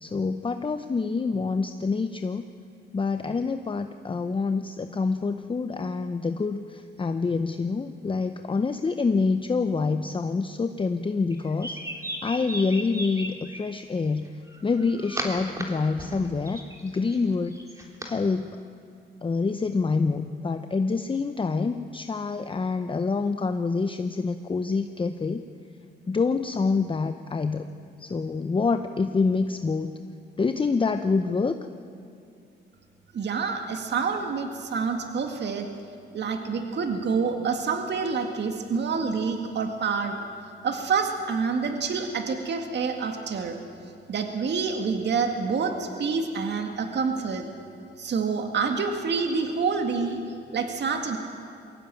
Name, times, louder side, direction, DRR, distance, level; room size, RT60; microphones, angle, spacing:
voice 1, 0.0-2.4 2.9-11.8 12.2-14.3 14.6-17.5 18.0-18.6 19.2-25.4 26.1-27.7 28.0-29.9 30.4-31.6, left 4 dB, 25° left, 9 dB, 0.8 m, -26 dB
sound 1, 11.3-13.6 14.5-15.6 16.0-18.1, right 1 dB, 15° right, 3.5 m, -36 dB
voice 2, 33.1-35.7 36.1-40.1 40.6-43.6 44.1-47.4 48.0-50.2 50.5-51.2, right 5 dB, 60° right, 5 dB, 2.1 m, -27 dB
22.5 x 16.5 x 9.1 m, 2.5 s
cardioid pair, 95°, 20 cm